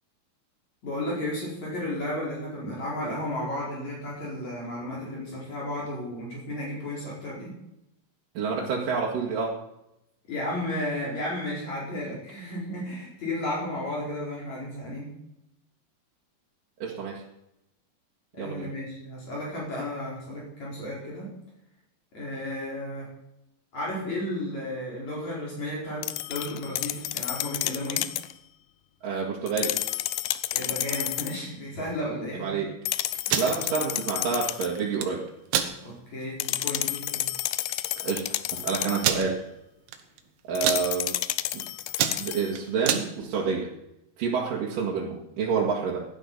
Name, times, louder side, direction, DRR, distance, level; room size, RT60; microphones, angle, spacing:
voice 1, 0.8-7.5 10.3-15.1 18.3-21.3 22.1-23.1 23.7-28.1 30.5-32.6 33.3-33.4 35.8-37.3, left 1 dB, 45° left, -5 dB, 5.5 m, -33 dB
voice 2, 8.3-9.6 16.8-17.2 18.4-18.7 29.0-29.8 32.4-32.7 33.3-35.2 38.0-38.2 38.5-39.4 40.5-41.2 41.5-41.6 42.2-43.7 44.2-46.0, right 5 dB, 65° right, -3 dB, 3.2 m, -28 dB
sound 1, 26.0-28.3 29.5-31.4 32.8-34.8 36.4-39.1 40.5-42.5, left 15 dB, 80° left, 1.9 m, -31 dB
sound 2, 33.1-33.5 34.8-35.1 35.5-35.7 36.2-36.3 36.7-36.9 37.7-37.8 38.0-38.1 39.0-39.3 39.9-40.2 40.5-40.8 41.4-41.6 41.9-43.1, right 9 dB, 90° right, 3.2 m, -26 dB
16.5 x 11.0 x 5.5 m, 0.85 s
omnidirectional pair, 4.5 m